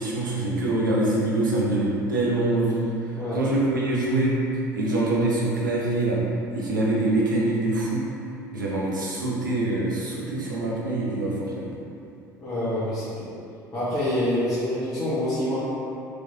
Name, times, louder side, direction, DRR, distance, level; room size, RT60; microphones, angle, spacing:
voice 1, 0.0-2.9 3.3-4.4 4.7-6.2 6.5-8.0 8.5-11.7, right 2 dB, 80° right, -5 dB, 0.7 m, -24 dB
voice 2, 12.4-13.3 13.7-15.6, left 1 dB, 35° left, -12 dB, 1.3 m, -26 dB
4.8 x 3.1 x 2.7 m, 2.6 s
figure-of-eight pair, 60°, 10 cm